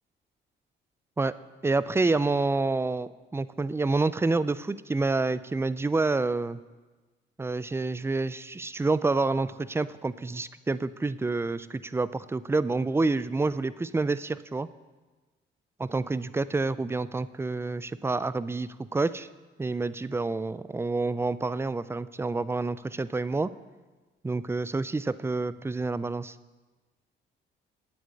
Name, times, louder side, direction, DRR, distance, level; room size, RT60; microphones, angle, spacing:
voice 1, 1.6-6.6 7.4-14.7 15.8-19.3 19.6-23.5 24.2-26.3, right 3 dB, 10° right, 16 dB, 0.4 m, -28 dB
8.6 x 7.5 x 8.4 m, 1.3 s
cardioid pair, 90°, 20 cm